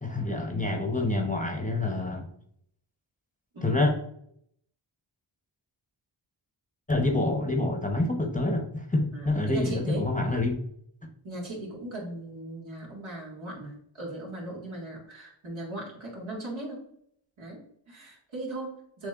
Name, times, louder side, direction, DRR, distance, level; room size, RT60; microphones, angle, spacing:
voice 1, 0.0-2.3 3.6-3.9 6.9-10.6, left 2 dB, 15° left, 3 dB, 0.8 m, -27 dB
voice 2, 9.1-10.1 11.2-16.8 17.4-19.1, right 1 dB, 75° right, -3 dB, 1.9 m, -38 dB
6.7 x 3.1 x 2.4 m, 0.69 s
cardioid pair, 55°, 48 cm